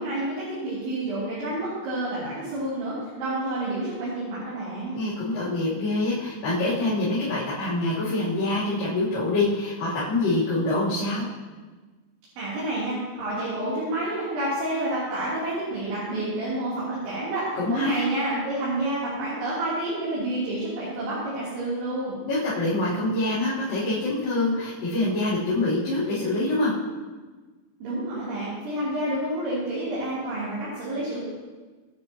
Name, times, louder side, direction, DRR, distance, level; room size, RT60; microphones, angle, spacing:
voice 1, 0.0-5.0 12.4-22.2 27.8-31.2, right 1 dB, 75° right, -10 dB, 5.8 m, -29 dB
voice 2, 4.9-11.3 17.5-18.1 22.3-26.7, left 2 dB, 50° left, -12 dB, 4.9 m, -25 dB
25.0 x 9.6 x 3.0 m, 1.3 s
omnidirectional pair, 5.5 m